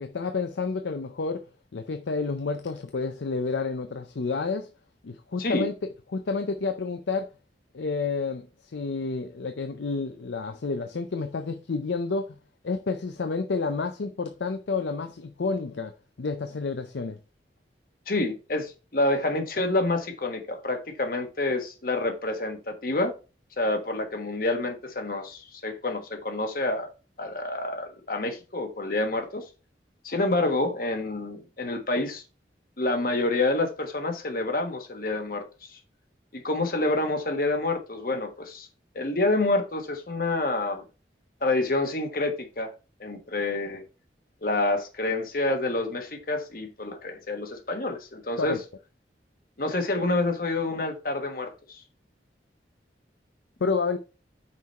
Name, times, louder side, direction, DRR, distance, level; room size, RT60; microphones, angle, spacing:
voice 1, 0.0-1.4 1.7-4.7 5.0-5.7 6.1-7.3 7.7-12.4 12.6-15.9 16.2-17.2 48.4-48.6 53.6-54.0, left 4 dB, 80° left, 0.6 m, -30 dB
voice 2, 18.1-23.1 23.6-26.9 27.2-29.5 30.0-32.2 32.8-35.8 36.3-38.7 38.9-40.8 41.4-42.7 43.0-43.8 44.4-48.6 49.6-51.8, left 2 dB, 50° left, 1.3 m, -28 dB
5.9 x 4.7 x 4.4 m
head